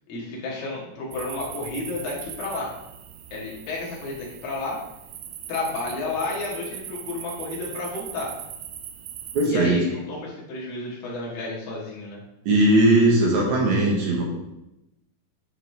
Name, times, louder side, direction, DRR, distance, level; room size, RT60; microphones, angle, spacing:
voice 1, 0.1-2.7 3.3-4.8 5.5-8.3 9.5-12.2, left 3 dB, 85° left, -4 dB, 3.5 m, -31 dB
sound 1, 1.1-9.5, right 9 dB, 85° right, 2.4 m, -40 dB
voice 2, 9.3-9.8 12.5-14.2, right 1 dB, 65° right, -2 dB, 2.3 m, -19 dB
8.9 x 4.7 x 3.3 m, 0.90 s
omnidirectional pair, 4.0 m